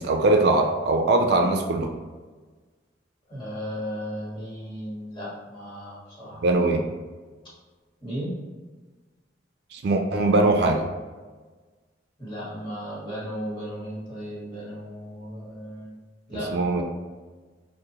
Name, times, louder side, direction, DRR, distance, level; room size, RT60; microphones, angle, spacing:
voice 1, 0.0-1.9 6.4-6.8 9.7-10.8 16.3-16.8, right 2 dB, 65° right, 3 dB, 0.4 m, -21 dB
voice 2, 3.3-6.6 8.0-8.3 12.2-15.9 16.3-16.5, equal, 25° left, -8 dB, 1.3 m, -35 dB
4.8 x 2.1 x 2.8 m, 1.3 s
head